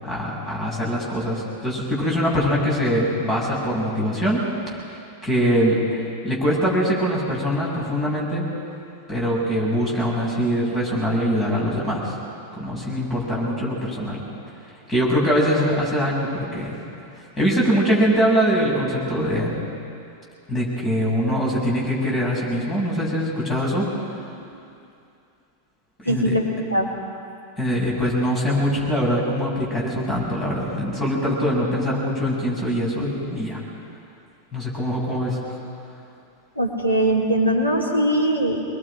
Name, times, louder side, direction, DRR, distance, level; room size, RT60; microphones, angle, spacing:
voice 1, 0.0-4.4 4.9-5.8 6.2-8.4 9.1-12.1 12.6-14.2 14.9-16.8 17.4-19.6 20.5-23.9 24.2-24.3 26.0-26.3 27.6-33.6 34.5-35.6, equal, 20° left, -4 dB, 7.3 m, -23 dB
voice 2, 26.1-26.4 26.7-26.9 36.6-38.6, right 1 dB, 85° left, -4 dB, 3.7 m, -21 dB
24.5 x 21.0 x 5.1 m, 2.6 s
figure-of-eight pair, 90°, 0 cm